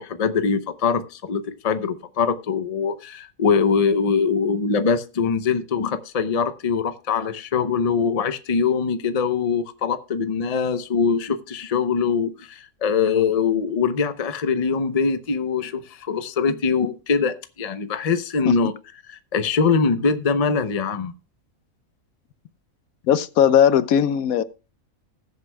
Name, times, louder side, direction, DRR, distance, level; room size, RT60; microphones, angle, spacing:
voice 1, 0.0-18.7 19.1-21.1, left 5 dB, 35° left, 0.7 m, -23 dB
voice 2, 23.1-24.4, left 9 dB, 80° left, 1.1 m, -18 dB
20.5 x 7.9 x 2.2 m
omnidirectional pair, 1.5 m